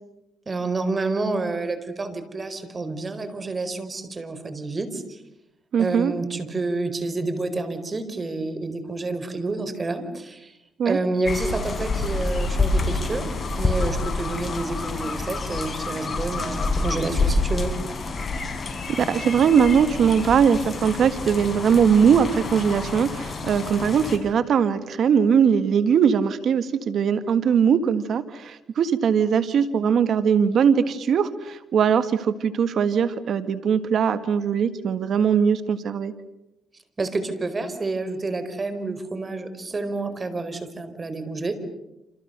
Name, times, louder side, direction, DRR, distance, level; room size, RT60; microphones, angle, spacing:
voice 1, 0.5-5.2 5.8-10.6 10.8-17.7 37.0-41.5, right 3 dB, 30° right, 10 dB, 4.5 m, -29 dB
voice 2, 5.7-6.1 10.8-11.0 19.1-36.1, right 7 dB, 60° right, 11 dB, 1.7 m, -20 dB
sound 1, 11.2-24.2, left 3 dB, 35° left, 6.4 m, -27 dB
28.5 x 28.5 x 6.8 m, 0.92 s
cardioid pair, 90°, 0 cm